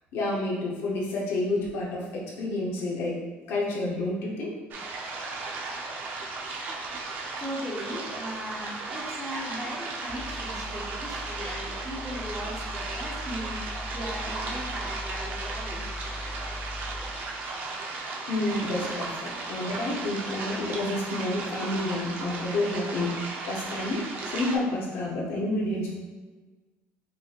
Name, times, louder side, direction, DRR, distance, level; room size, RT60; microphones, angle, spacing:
voice 1, 0.1-3.2 3.5-4.5 18.3-23.1 23.5-24.0 24.3-26.0, left 2 dB, 65° left, -3 dB, 0.8 m, -29 dB
sound 1, 4.7-24.6, right 3 dB, 45° right, 0.7 m, -36 dB
voice 2, 7.4-15.9, equal, 5° right, -4 dB, 0.8 m, -38 dB
sound 2, 10.1-17.9, left 1 dB, 30° left, 0.4 m, -40 dB
5.4 x 3.1 x 2.4 m, 1.3 s
cardioid pair, 160°, 5 cm